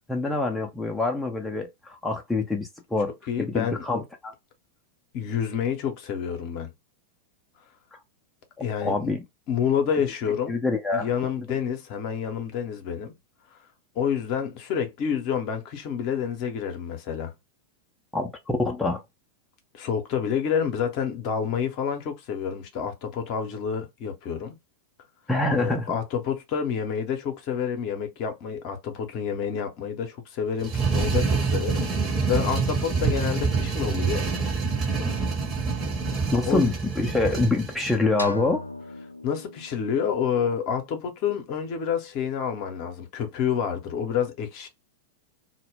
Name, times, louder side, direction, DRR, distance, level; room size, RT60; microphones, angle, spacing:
voice 1, 0.1-3.1 3.4-4.3 8.8-9.2 10.5-11.1 18.1-18.3 18.6-19.0 25.3-25.9 36.3-38.6, left 3 dB, 5° left, 0.5 m, -25 dB
voice 2, 3.3-3.8 5.1-6.7 8.6-9.1 9.5-10.6 10.9-13.1 14.0-17.3 19.7-24.6 25.5-34.3 36.5-36.7 39.2-44.7, left 7 dB, 45° left, 0.7 m, -28 dB
sound 1, 30.6-38.0, right 4 dB, 25° right, 0.9 m, -26 dB
sound 2, 38.2-40.1, left 2 dB, 85° left, 0.3 m, -37 dB
2.1 x 2.0 x 3.3 m
figure-of-eight pair, 90°, 0 cm